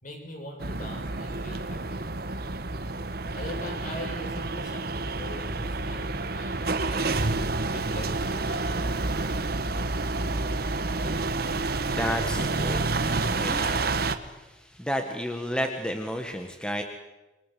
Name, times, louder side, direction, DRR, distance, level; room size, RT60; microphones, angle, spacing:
voice 1, 0.0-2.0 3.3-7.4 7.7-9.4, left 1 dB, 45° left, 2 dB, 6.6 m, -42 dB
sound 1, 0.6-14.2, right 3 dB, 60° right, 1.5 m, -29 dB
voice 2, 10.3-16.8, equal, 5° left, 4 dB, 1.7 m, -33 dB
27.5 x 23.0 x 7.7 m, 1.1 s
head